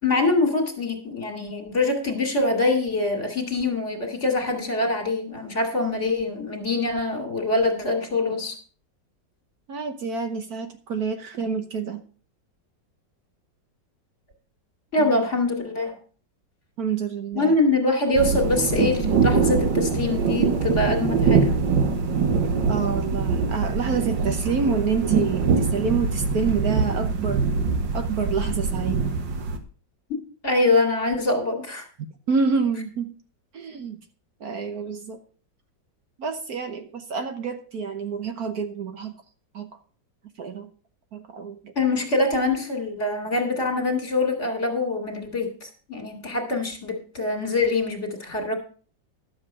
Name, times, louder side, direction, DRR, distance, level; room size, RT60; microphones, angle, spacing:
voice 1, 0.0-8.5 14.9-16.0 17.3-21.6 30.1-30.2 30.4-31.9 41.8-48.6, left 2 dB, 40° left, 4 dB, 2.6 m, -24 dB
voice 2, 9.7-12.0 15.0-15.2 16.8-17.6 22.6-27.4 27.9-29.0 32.0-33.1 33.5-34.0 34.4-35.2 36.2-39.1 39.5-39.7 40.4-40.7 41.1-41.7, right 5 dB, 60° right, 7 dB, 1.4 m, -28 dB
sound 1, 18.1-29.6, right 5 dB, 80° right, 1.9 m, -23 dB
12.0 x 7.5 x 5.4 m, 0.40 s
omnidirectional pair, 2.0 m